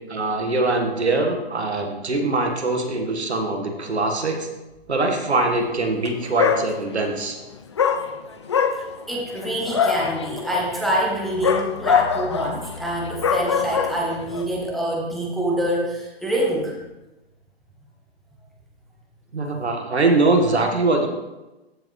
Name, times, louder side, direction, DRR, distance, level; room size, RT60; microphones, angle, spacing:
voice 1, 0.1-4.5 4.9-7.4 19.3-21.1, right 2 dB, 85° right, 3 dB, 1.7 m, -22 dB
Dog, 5.9-6.1 6.4-7.1 7.8-14.4, left 7 dB, 30° left, 0.4 m, -24 dB
voice 2, 9.1-16.8, equal, ahead, -4 dB, 0.8 m, -25 dB
14.5 x 5.1 x 3.2 m, 1.0 s
hypercardioid pair, 140°, 32 cm